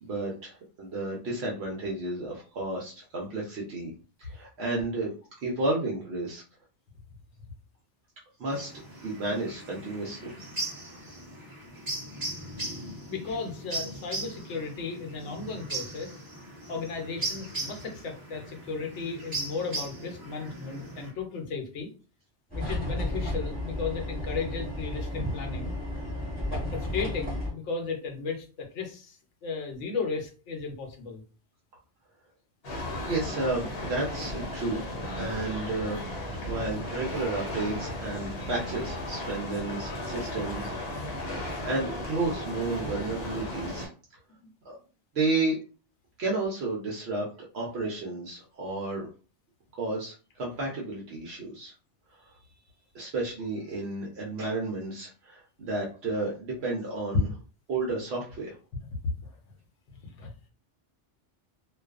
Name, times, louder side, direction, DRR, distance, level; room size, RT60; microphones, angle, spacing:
voice 1, 0.0-3.9 4.2-5.1 5.4-6.4 8.4-8.7 9.0-10.3 25.2-25.3 33.0-34.8 35.2-36.0 36.5-41.4 41.6-43.9 44.6-44.8 45.1-45.6 46.2-47.3 47.5-49.1 49.7-51.7 52.1-52.3 52.9-57.3 57.7-58.6, right 2 dB, 65° right, -2 dB, 0.9 m, -32 dB
sound 1, 8.5-21.1, right 2 dB, 20° right, 0.7 m, -38 dB
voice 2, 13.1-16.2 16.7-21.9 22.5-25.7 26.5-31.2 59.2-59.3 60.0-60.3, left 4 dB, 85° left, 3 dB, 1.0 m, -35 dB
sound 2, 22.5-27.5, left 1 dB, 10° left, 1.3 m, -33 dB
sound 3, 32.6-43.9, left 1 dB, 60° left, 0.9 m, -35 dB
2.4 x 2.2 x 2.3 m, 0.37 s
omnidirectional pair, 1.2 m